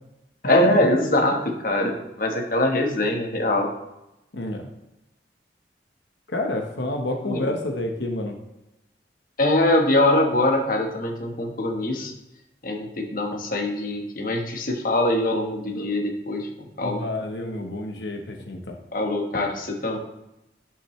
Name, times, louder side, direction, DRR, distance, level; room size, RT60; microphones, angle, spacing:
voice 1, 0.4-3.7 7.2-7.5 9.4-12.1 12.6-17.0 18.9-20.0, left 1 dB, 50° left, 2 dB, 1.3 m, -23 dB
voice 2, 4.3-4.7 6.3-8.4 15.8-15.9 16.8-18.8, left 1 dB, 90° left, 3 dB, 1.0 m, -29 dB
11.0 x 6.1 x 3.2 m, 0.90 s
head